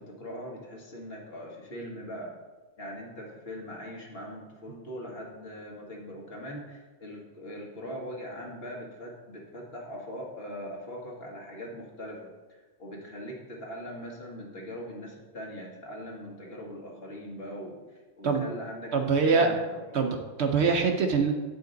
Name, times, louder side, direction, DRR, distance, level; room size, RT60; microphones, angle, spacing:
voice 1, 0.0-2.3 2.8-20.1, equal, 50° left, -2 dB, 1.6 m, -41 dB
voice 2, 18.9-19.5 19.9-21.3, right 5 dB, 60° right, 4 dB, 0.9 m, -24 dB
9.0 x 5.2 x 3.9 m, 1.2 s
omnidirectional pair, 1.3 m